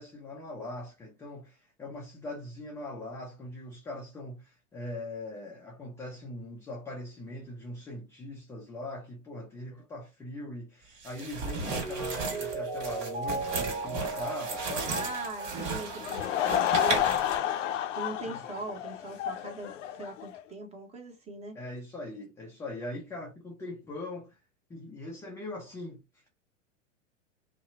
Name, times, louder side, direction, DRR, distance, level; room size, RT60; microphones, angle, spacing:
voice 1, 0.0-15.0 18.3-18.4 21.5-24.4 24.7-26.2, left 1 dB, 10° left, 0.3 m, -41 dB
sound 1, 11.0-17.4, right 3 dB, 55° right, 1.6 m, -35 dB
Mallet percussion, 11.8-17.3 17.7-17.8, right 3 dB, 75° right, 1.0 m, -37 dB
voice 2, 14.9-21.5, right 2 dB, 15° right, 0.8 m, -41 dB
Laughter / Crowd, 15.9-20.4, left 11 dB, 75° left, 0.5 m, -30 dB
2.7 x 2.1 x 2.6 m
hypercardioid pair, 105°, 38 cm